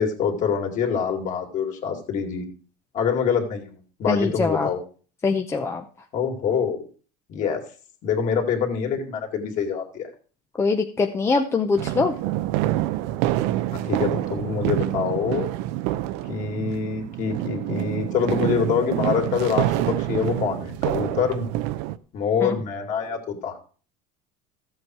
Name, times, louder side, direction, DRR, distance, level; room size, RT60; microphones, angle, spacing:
voice 1, 0.0-2.4 2.9-4.8 6.1-6.8 7.3-7.6 8.0-10.1 13.7-15.5 16.3-21.5 22.1-23.6, left 6 dB, 40° left, 3 dB, 2.7 m, -25 dB
voice 2, 4.1-4.7 5.2-5.8 10.6-12.1 22.4-22.6, left 4 dB, 15° left, 4 dB, 0.6 m, -23 dB
sound 1, 11.8-22.0, right 15 dB, 70° right, 0.7 m, -27 dB
14.0 x 7.9 x 4.7 m, 0.39 s
cardioid pair, 170°, 19 cm